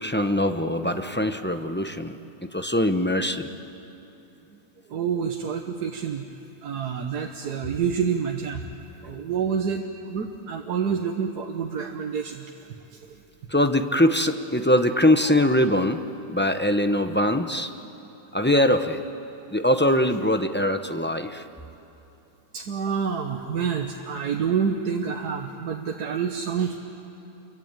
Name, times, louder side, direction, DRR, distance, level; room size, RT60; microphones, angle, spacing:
voice 1, 0.0-2.2 2.5-3.5 13.5-16.0 16.3-17.7 18.3-19.0 19.5-21.4, left 1 dB, 10° left, 7 dB, 0.6 m, -22 dB
voice 2, 4.9-6.3 6.6-8.7 9.0-12.5 12.9-13.0 22.5-26.8, right 6 dB, 85° right, 3 dB, 1.7 m, -28 dB
28.5 x 23.5 x 8.9 m, 2.9 s
omnidirectional pair, 1.7 m